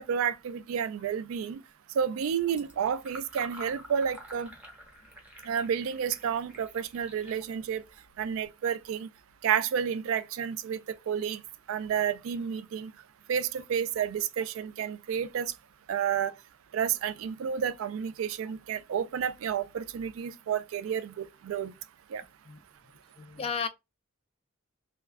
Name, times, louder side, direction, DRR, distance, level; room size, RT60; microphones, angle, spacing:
voice 1, 0.0-1.6 2.0-4.5 5.4-7.8 8.2-9.1 9.4-11.4 11.7-12.9 13.3-15.5 15.9-16.3 16.7-21.7 22.1-22.2, right 8 dB, 70° right, 0.3 m, -30 dB
Fill (with liquid), 2.3-8.5, right 1 dB, 5° right, 0.7 m, -49 dB
voice 2, 23.2-23.7, left 6 dB, 30° left, 0.3 m, -33 dB
2.3 x 2.2 x 3.3 m
head